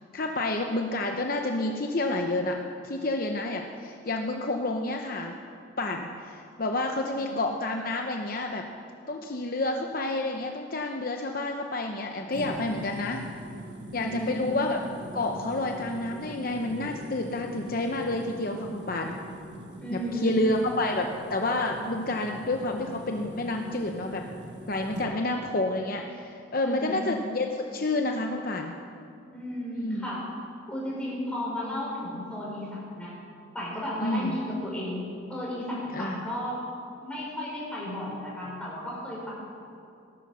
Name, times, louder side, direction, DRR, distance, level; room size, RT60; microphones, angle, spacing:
voice 1, 0.1-2.6 2.8-5.4 5.8-8.6 9.1-13.2 13.9-14.8 15.1-19.2 19.9-24.2 24.7-28.7 29.7-30.1 34.0-34.4 35.9-36.2, left 2 dB, 45° left, 3 dB, 0.8 m, -29 dB
sound 1, 12.3-25.1, equal, 60° right, 1.6 m, -42 dB
voice 2, 14.0-14.3 19.8-20.6 26.6-27.0 29.3-30.3 30.7-33.1 33.5-36.6 37.0-39.3, left 1 dB, 5° left, -6 dB, 4.7 m, -34 dB
17.5 x 11.5 x 6.2 m, 2.6 s
head